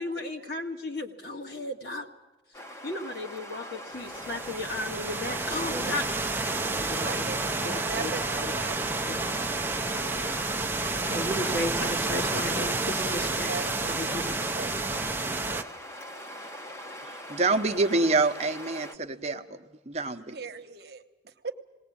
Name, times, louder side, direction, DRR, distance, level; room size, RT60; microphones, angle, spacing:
voice 1, 0.0-2.1 2.8-6.0 6.5-7.3 7.6-8.1 9.1-9.2 11.1-13.5 13.8-14.3, left 1 dB, 55° left, 2 dB, 1.9 m, -34 dB
sound 1, 2.5-18.9, equal, 15° left, 0.9 m, -42 dB
sound 2, 4.0-15.6, right 3 dB, 10° right, 0.6 m, -30 dB
sound 3, 4.4-11.5, equal, 85° left, 6.5 m, -52 dB
voice 2, 7.0-10.6 10.9-11.2 12.7-15.6 20.3-21.5, right 4 dB, 60° right, 6 dB, 1.1 m, -41 dB
voice 3, 17.3-19.6 19.9-20.4, right 3 dB, 35° right, 6 dB, 0.9 m, -26 dB
19.0 x 19.0 x 8.6 m, 1.1 s
head